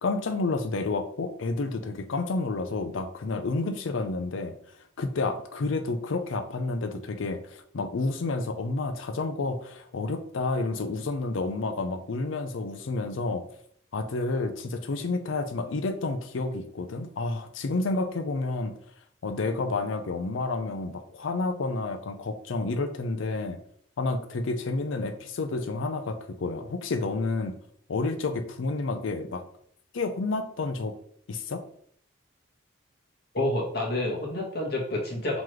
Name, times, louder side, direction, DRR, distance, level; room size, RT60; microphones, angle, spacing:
voice 1, 0.0-4.5 5.0-13.5 13.9-18.7 19.2-23.6 24.0-27.6 27.9-29.4 29.9-31.0 31.3-31.6, left 3 dB, 75° left, 8 dB, 0.5 m, -30 dB
voice 2, 33.3-35.4, left 1 dB, 50° left, -2 dB, 1.1 m, -28 dB
3.9 x 3.0 x 3.1 m, 0.65 s
head